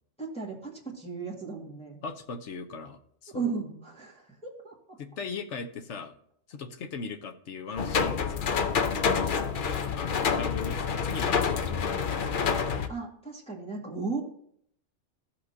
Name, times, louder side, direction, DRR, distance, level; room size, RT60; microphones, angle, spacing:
voice 1, 0.2-2.0 3.3-5.0 7.7-7.8 9.0-9.3 12.9-14.2, right 4 dB, 5° left, -4 dB, 1.9 m, -36 dB
voice 2, 2.0-3.4 5.0-6.1 6.5-8.5 9.8-12.7, left 5 dB, 70° left, 7 dB, 1.1 m, -39 dB
sound 1, 7.8-12.9, left 6 dB, 50° left, 0.7 m, -27 dB
15.0 x 5.8 x 2.8 m, 0.67 s
omnidirectional pair, 1.3 m